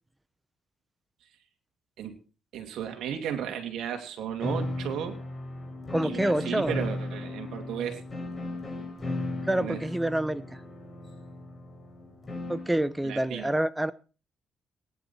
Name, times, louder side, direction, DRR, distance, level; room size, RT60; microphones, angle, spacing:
voice 1, 2.5-5.2 6.0-8.0 9.6-9.9 13.0-13.5, right 9 dB, 80° right, 6 dB, 2.6 m, -34 dB
sound 1, 4.4-12.8, left 2 dB, 30° left, 5.0 m, -36 dB
voice 2, 5.9-6.8 9.5-10.4 12.5-13.9, right 1 dB, 10° right, 16 dB, 0.9 m, -27 dB
18.5 x 10.5 x 4.4 m, 0.37 s
cardioid pair, 90°, 0 cm